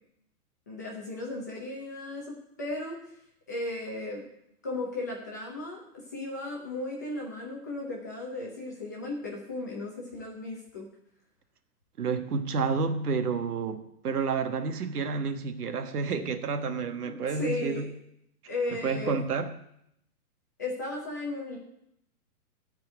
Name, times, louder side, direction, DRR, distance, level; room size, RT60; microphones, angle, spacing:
voice 1, 0.7-3.0 3.5-4.2 4.6-10.9 17.0-17.9 18.5-19.2 20.6-21.6, left 2 dB, 10° left, -2 dB, 0.6 m, -35 dB
voice 2, 12.0-17.9 18.8-19.5, right 5 dB, 75° right, 8 dB, 1.5 m, -30 dB
13.5 x 4.6 x 8.6 m, 0.77 s
hypercardioid pair, 175°, 45 cm